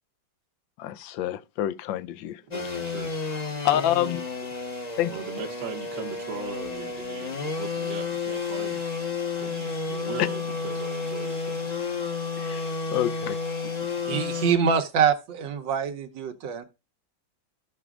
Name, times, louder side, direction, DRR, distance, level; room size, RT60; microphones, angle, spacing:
voice 1, 0.8-2.4 3.2-4.2 5.0-5.1 12.4-13.4, left 12 dB, 85° left, 1.3 m, -28 dB
sound 1, 2.5-14.5, left 4 dB, 35° left, 0.7 m, -31 dB
voice 2, 2.5-3.1 3.7-3.8 4.7-4.8 5.1-8.8 9.4-11.8 13.6-13.7, right 5 dB, 55° right, 1.0 m, -39 dB
voice 3, 14.1-16.6, right 7 dB, 80° right, 1.6 m, -25 dB
15.5 x 6.0 x 2.4 m
omnidirectional pair, 2.0 m